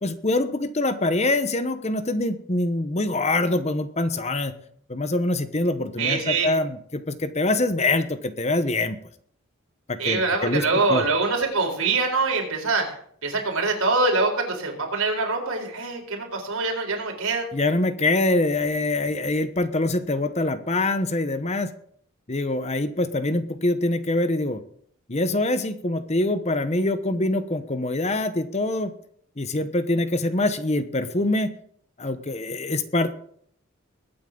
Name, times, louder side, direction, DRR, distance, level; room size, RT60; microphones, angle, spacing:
voice 1, 0.0-4.5 4.9-9.0 9.9-10.6 10.9-11.0 17.5-21.7 22.3-24.6 25.1-28.9 29.4-31.5 32.0-33.2, left 2 dB, 30° left, 11 dB, 0.9 m, -24 dB
voice 2, 6.0-6.5 10.0-12.9 13.2-17.5, right 3 dB, 80° right, 2 dB, 4.1 m, -24 dB
21.5 x 9.2 x 3.8 m, 0.62 s
head